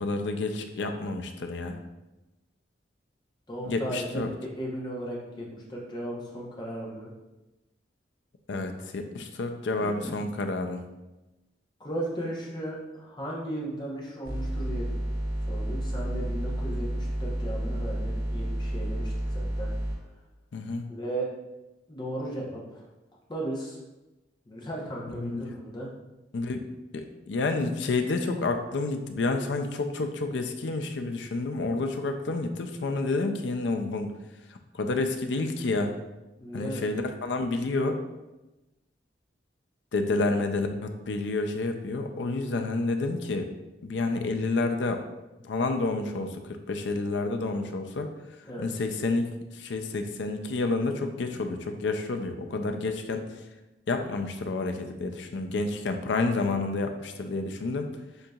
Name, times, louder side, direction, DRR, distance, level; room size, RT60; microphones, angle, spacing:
voice 1, 0.0-1.8 3.7-4.3 8.5-10.8 20.5-20.9 25.1-25.5 26.3-26.6 26.9-34.1 34.5-35.9 36.5-38.0 39.9-43.5 43.8-45.0 45.4-46.4 46.7-48.1 48.6-53.2 53.9-57.9, left 3 dB, 80° left, 6 dB, 0.5 m, -29 dB
voice 2, 3.5-4.3 4.6-7.1 9.7-10.2 11.8-14.9 15.5-19.7 20.9-21.3 21.9-22.8 23.3-23.8 24.5-25.9 36.4-36.8 48.5-48.7, right 1 dB, 25° left, -4 dB, 1.0 m, -36 dB
sound 1, 14.2-20.0, right 1 dB, 50° right, 1.6 m, -30 dB
7.8 x 2.9 x 2.4 m, 1.0 s
head